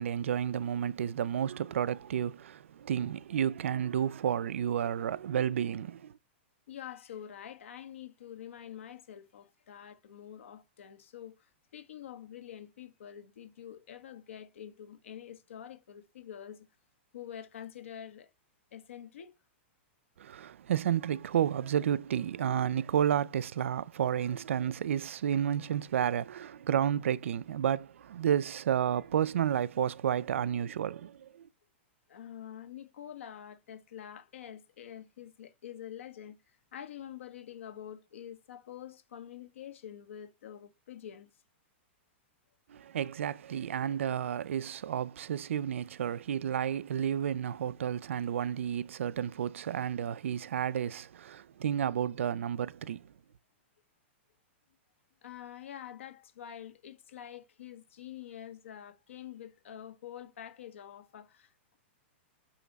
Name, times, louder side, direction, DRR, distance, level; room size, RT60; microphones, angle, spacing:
voice 1, 0.0-6.2 20.2-31.5 42.7-53.1, right 9 dB, 85° right, 0.6 m, -31 dB
voice 2, 6.7-16.7 17.1-18.3 18.7-19.3 32.1-41.3 55.2-61.8, left 10 dB, 85° left, 1.6 m, -47 dB
6.7 x 5.9 x 4.1 m
supercardioid pair, 170°, 7 cm